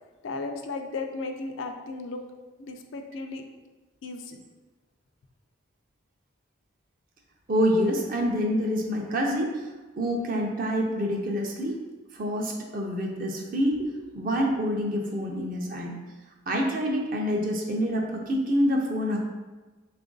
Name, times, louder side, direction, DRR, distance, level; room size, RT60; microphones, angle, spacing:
voice 1, 0.2-2.2 2.6-3.4 4.0-4.4, left 3 dB, 80° left, 5 dB, 0.4 m, -35 dB
voice 2, 7.5-9.6 10.0-11.8 12.1-16.0 16.5-19.2, equal, 45° right, 0 dB, 0.5 m, -27 dB
3.7 x 2.5 x 3.8 m, 1.2 s
head